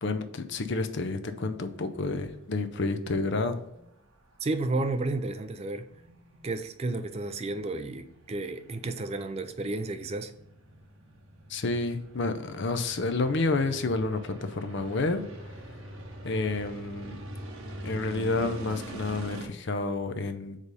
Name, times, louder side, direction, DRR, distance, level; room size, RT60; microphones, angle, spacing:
voice 1, 0.0-3.6 11.5-15.2 16.2-17.2 17.8-20.6, left 3 dB, 55° left, 0.6 m, -29 dB
sound 1, 1.7-19.5, right 1 dB, 70° right, 1.2 m, -45 dB
voice 2, 4.4-5.9 6.4-10.3, right 2 dB, 30° right, 0.4 m, -32 dB
4.9 x 4.1 x 5.2 m
head